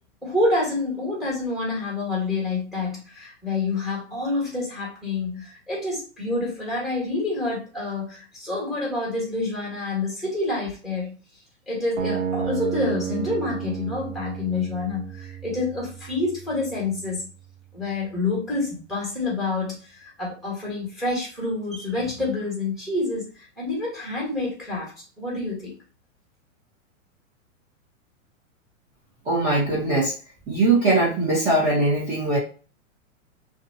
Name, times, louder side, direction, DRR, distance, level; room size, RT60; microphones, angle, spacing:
voice 1, 0.2-11.1 11.7-17.3 17.7-24.9 25.2-25.7, left 2 dB, ahead, -4 dB, 1.3 m, -28 dB
sound 1, 12.0-18.0, right 7 dB, 45° right, 0.5 m, -32 dB
voice 2, 29.2-30.2 30.5-32.4, right 2 dB, 20° right, -7 dB, 0.8 m, -21 dB
2.6 x 2.3 x 2.6 m, 0.37 s
hypercardioid pair, 135°, 40 cm